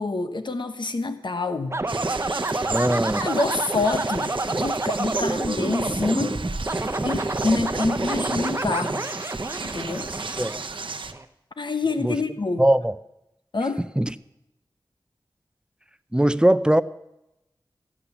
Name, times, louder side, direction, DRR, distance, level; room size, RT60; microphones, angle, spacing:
voice 1, 0.0-1.8 2.9-6.4 7.0-9.1 9.6-10.1 11.6-12.7 13.5-13.8, left 3 dB, 70° left, 8 dB, 1.0 m, -27 dB
sound 1, 1.7-11.2, right 2 dB, 35° right, 0.9 m, -28 dB
sound 2, 1.9-11.1, right 4 dB, 85° right, 0.7 m, -35 dB
voice 2, 2.7-3.2 10.4-10.6 12.0-12.2 12.6-12.9 14.0-14.1 16.1-16.8, right 1 dB, 10° right, 14 dB, 0.5 m, -20 dB
13.5 x 8.6 x 7.1 m, 0.88 s
wide cardioid pair, 60°, 8 cm